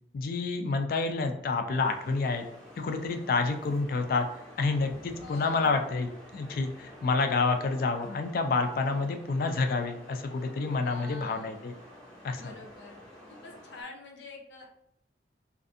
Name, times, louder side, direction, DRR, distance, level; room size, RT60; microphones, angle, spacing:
voice 1, 0.1-2.4 2.8-4.3 4.6-6.1 6.3-11.7 12.2-12.5, left 3 dB, 55° left, 6 dB, 0.3 m, -28 dB
sound 1, 1.8-13.8, equal, 5° left, 0.6 m, -50 dB
voice 2, 5.2-5.8 10.8-11.6 12.3-13.0 13.3-14.6, left 2 dB, 85° left, 1 dB, 0.6 m, -46 dB
2.5 x 2.4 x 2.5 m, 0.77 s
head